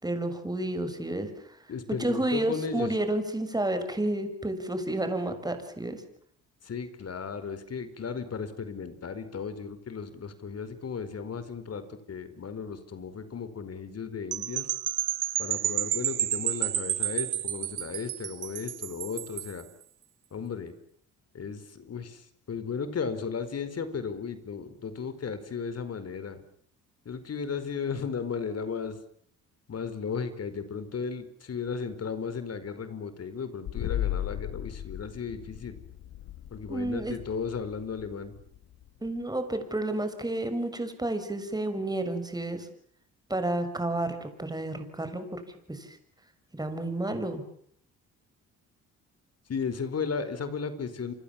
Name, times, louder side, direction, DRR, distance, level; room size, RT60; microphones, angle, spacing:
voice 1, 0.0-1.6 2.0-6.0 36.7-37.2 39.0-42.7 43.3-45.4 45.7-46.0 46.5-47.4, right 1 dB, 10° right, 8 dB, 6.4 m, -31 dB
voice 2, 1.7-3.0 6.6-14.7 15.4-19.7 20.3-20.7 21.3-26.4 27.0-29.0 29.7-35.8 36.5-38.4 49.5-51.1, left 5 dB, 50° left, 12 dB, 4.8 m, -35 dB
sound 1, 14.3-19.6, right 12 dB, 65° right, 1.4 m, -30 dB
sound 2, 33.7-39.2, left 12 dB, 80° left, 2.1 m, -36 dB
30.0 x 25.0 x 7.4 m, 0.64 s
cardioid pair, 80°, 33 cm